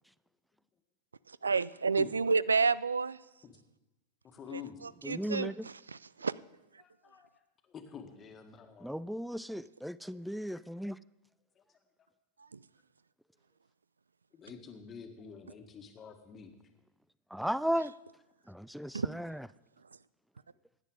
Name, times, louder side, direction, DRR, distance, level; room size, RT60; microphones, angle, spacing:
voice 1, 1.3-3.2 4.5-6.4 12.4-12.6 18.9-19.1, right 4 dB, 75° right, 0.3 m, -30 dB
voice 2, 4.2-4.8 6.8-7.3 7.7-8.9 14.3-16.5, left 7 dB, 25° left, 1.8 m, -47 dB
voice 3, 5.0-5.7 8.8-11.0 17.3-17.9 18.5-19.5, equal, ahead, 0.3 m, -35 dB
17.0 x 10.0 x 4.9 m
figure-of-eight pair, 90°, 0 cm